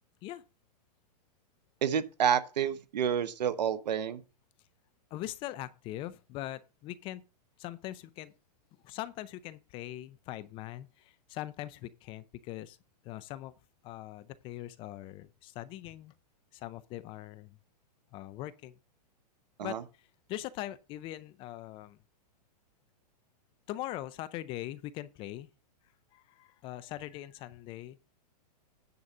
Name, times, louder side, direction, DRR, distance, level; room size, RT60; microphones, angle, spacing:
voice 1, 1.8-4.2 19.6-19.8, right 8 dB, 85° right, 1.2 m, -29 dB
voice 2, 5.1-7.2 7.6-8.3 8.8-12.8 13.0-13.5 13.8-16.1 16.5-17.6 18.1-18.8 19.6-19.8 20.3-22.0 23.7-25.5 26.1-28.0, left 14 dB, 25° left, 0.5 m, -41 dB
9.6 x 4.0 x 7.3 m
hypercardioid pair, 145°, 21 cm